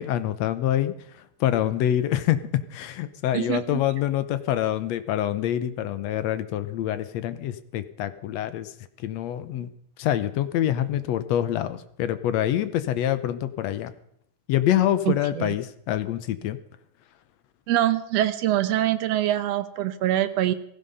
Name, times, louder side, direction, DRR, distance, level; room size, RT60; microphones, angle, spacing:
voice 1, 0.0-2.4 2.7-8.7 9.0-9.7 10.0-13.9 14.5-16.6, left 11 dB, 70° left, 12 dB, 1.9 m, -26 dB
voice 2, 3.3-3.8 15.1-15.5 17.7-20.5, right 13 dB, 70° right, 11 dB, 1.7 m, -24 dB
16.5 x 16.0 x 5.5 m, 0.70 s
omnidirectional pair, 3.5 m